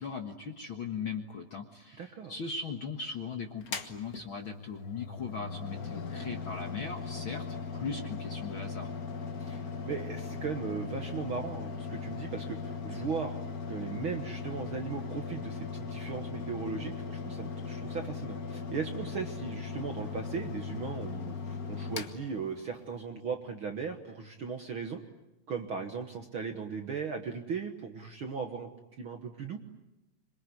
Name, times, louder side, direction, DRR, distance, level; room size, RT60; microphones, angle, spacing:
voice 1, 0.0-7.4 7.7-8.9, left 5 dB, 50° left, 4 dB, 1.7 m, -39 dB
voice 2, 2.0-2.3 9.4-13.4 13.7-25.0 25.5-28.7 29.0-29.6, right 5 dB, 50° right, 5 dB, 1.6 m, -37 dB
Mechanical fan, 3.6-23.0, left 5 dB, 65° left, 0.8 m, -39 dB
26.5 x 23.0 x 9.8 m, 0.98 s
omnidirectional pair, 4.0 m